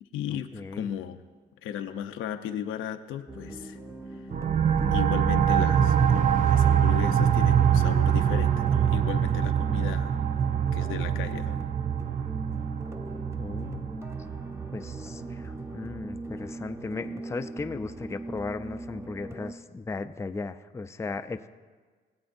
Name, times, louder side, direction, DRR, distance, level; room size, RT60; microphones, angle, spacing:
voice 1, 0.0-1.2 1.6-3.8 4.1-4.3 4.9-10.2 10.7-11.6, left 9 dB, 90° left, 7 dB, 0.7 m, -36 dB
voice 2, 0.5-0.9 13.4-13.9 14.7-21.5, left 3 dB, 15° left, 9 dB, 0.4 m, -36 dB
sound 1, 3.3-19.5, right 2 dB, 15° right, 0.8 m, -40 dB
sound 2, 4.3-15.6, right 8 dB, 40° right, 0.5 m, -24 dB
20.5 x 8.1 x 2.6 m, 1.5 s
cardioid pair, 90°, 20 cm